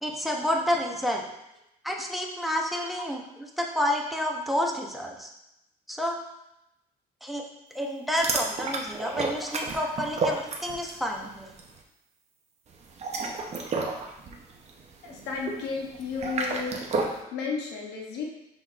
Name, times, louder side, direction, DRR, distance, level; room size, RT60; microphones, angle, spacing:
voice 1, 0.0-1.2 1.8-3.2 3.6-5.3 5.9-6.2 7.2-7.4 7.7-11.5, equal, ahead, 0 dB, 0.6 m, -29 dB
sound 1, 8.1-11.1 11.3-11.7 12.8-17.2, right 3 dB, 40° right, 0.6 m, -32 dB
voice 2, 15.0-16.8 17.3-18.2, left 5 dB, 85° left, 0 dB, 0.8 m, -33 dB
5.7 x 3.5 x 2.4 m, 0.85 s
cardioid pair, 110°, 17 cm